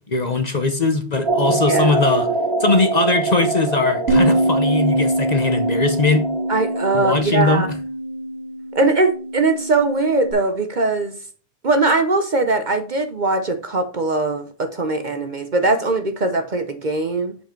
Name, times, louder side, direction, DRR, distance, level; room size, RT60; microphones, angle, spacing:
voice 1, 0.1-2.3 2.6-6.2 6.9-7.6, left 3 dB, 40° left, 0.9 m, -20 dB
sound 1, 1.3-7.2, right 3 dB, 25° right, 1.2 m, -24 dB
voice 2, 1.5-2.0 6.5-7.7 8.7-11.2 11.6-17.4, right 3 dB, 45° right, 0.8 m, -20 dB
Bass guitar, 4.1-10.3, right 1 dB, 65° right, 2.2 m, -23 dB
7.7 x 5.0 x 4.4 m
omnidirectional pair, 1.3 m